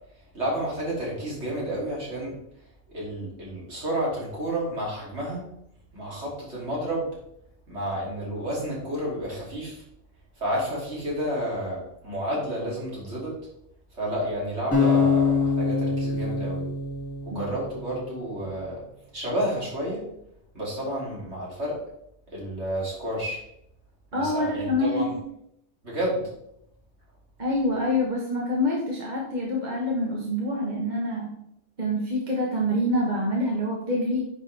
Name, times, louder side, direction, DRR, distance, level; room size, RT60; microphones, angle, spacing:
voice 1, 0.3-2.4 2.9-5.4 5.9-7.1 7.7-9.8 10.4-13.4 14.0-16.6 17.3-18.8 19.1-20.0 20.5-21.8 22.3-23.4 24.1-25.1 25.8-26.2, right 1 dB, 55° right, -5 dB, 3.7 m, -30 dB
sound 1, 14.7-17.9, left 4 dB, 10° left, 2.8 m, -24 dB
voice 2, 24.1-25.2 27.4-31.3 31.8-34.3, left 1 dB, 35° right, -3 dB, 1.6 m, -26 dB
9.8 x 6.6 x 3.5 m, 0.77 s
omnidirectional pair, 1.4 m